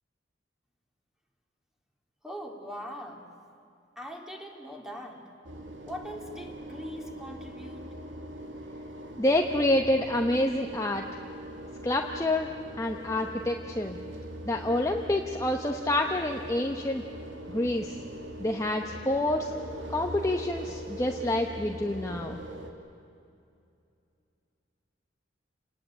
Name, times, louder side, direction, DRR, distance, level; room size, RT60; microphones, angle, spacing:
voice 1, 2.2-3.2 4.0-5.2 5.9-7.9, equal, 5° right, 1 dB, 2.8 m, -41 dB
sound 1, 5.4-22.7, equal, 80° right, 2.6 m, -42 dB
voice 2, 9.2-11.0 11.8-12.5 12.8-14.0 14.4-17.0 17.5-18.0 18.4-19.5 19.9-22.4, left 1 dB, 15° left, 2 dB, 1.0 m, -27 dB
28.5 x 20.0 x 8.9 m, 2.5 s
head